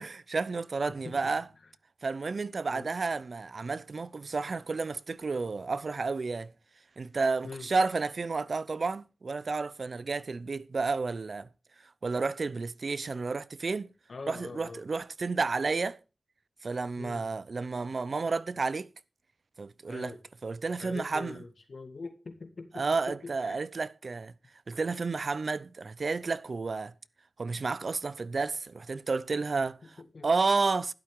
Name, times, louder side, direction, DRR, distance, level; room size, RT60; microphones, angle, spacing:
voice 1, 0.0-1.5 2.0-6.5 7.0-11.5 12.0-13.9 14.3-16.0 16.6-18.9 19.6-20.1 20.4-21.4 22.7-24.3 24.7-26.9 27.4-30.0 30.2-30.9, right 4 dB, 60° right, 0.6 m, -31 dB
voice 2, 14.1-14.8 17.0-17.2 19.9-20.2 20.8-23.6 30.1-30.3, left 3 dB, 65° left, 2.0 m, -43 dB
12.0 x 11.5 x 3.7 m
wide cardioid pair, 90°, 0 cm